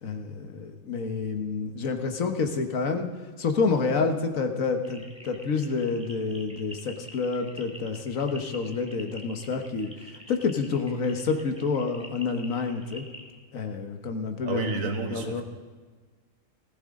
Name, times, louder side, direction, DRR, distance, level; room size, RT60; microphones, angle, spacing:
voice 1, 0.0-3.1 3.4-9.9 10.3-13.0 13.5-14.8 15.1-15.4, left 4 dB, 80° left, 5 dB, 1.6 m, -28 dB
sound 1, 4.8-13.3, equal, 5° right, 1.9 m, -47 dB
voice 2, 14.4-15.4, right 4 dB, 80° right, 5 dB, 1.8 m, -30 dB
19.5 x 15.0 x 3.7 m, 1.4 s
omnidirectional pair, 1.4 m